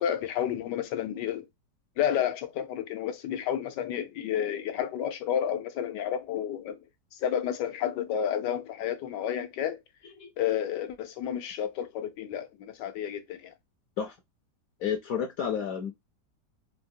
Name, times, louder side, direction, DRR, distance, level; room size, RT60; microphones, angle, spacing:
voice 1, 0.0-1.4 2.0-6.8 7.1-9.8 10.4-13.5, left 9 dB, 80° left, 1.3 m, -31 dB
voice 2, 14.8-15.9, left 8 dB, 65° left, 0.9 m, -30 dB
4.6 x 2.1 x 2.5 m
omnidirectional pair, 1.8 m